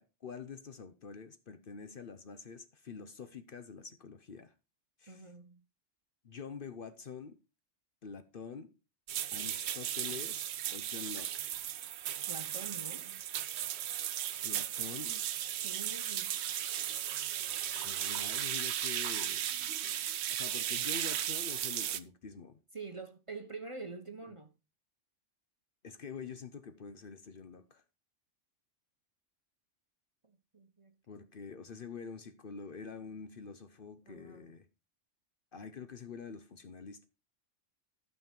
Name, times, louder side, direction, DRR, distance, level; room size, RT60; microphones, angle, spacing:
voice 1, 0.0-4.5 5.0-5.2 6.2-7.3 8.0-8.7 9.3-10.5 10.7-11.5 14.4-15.2 17.7-19.5 20.3-22.6 24.3-24.4 25.8-27.8 31.1-34.7 35.5-37.0, left 5 dB, 50° left, 0.9 m, -46 dB
voice 2, 5.1-5.6 12.3-13.1 15.6-16.3 22.7-24.5 30.2-30.9 34.1-34.5, right 4 dB, 30° right, 0.9 m, -46 dB
sound 1, 9.1-22.0, right 11 dB, 65° right, 0.8 m, -36 dB
12.5 x 5.7 x 4.4 m
omnidirectional pair, 1.3 m